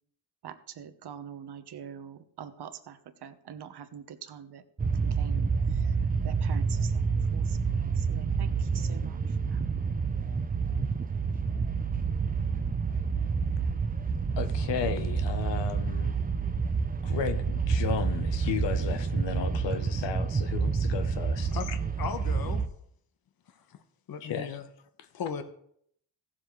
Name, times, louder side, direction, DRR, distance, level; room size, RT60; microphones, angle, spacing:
voice 1, 0.4-4.6 5.0-6.0 6.2-9.6, right 8 dB, 65° right, 9 dB, 1.1 m, -45 dB
sound 1, 4.8-22.7, right 5 dB, 20° right, 0.6 m, -28 dB
voice 2, 14.4-16.1 17.0-21.8 24.2-24.6, left 8 dB, 75° left, 9 dB, 0.9 m, -34 dB
voice 3, 22.0-22.7 24.1-24.6 25.1-25.4, left 7 dB, 55° left, 9 dB, 1.1 m, -36 dB
16.0 x 7.6 x 3.2 m, 0.68 s
cardioid pair, 80°, 43 cm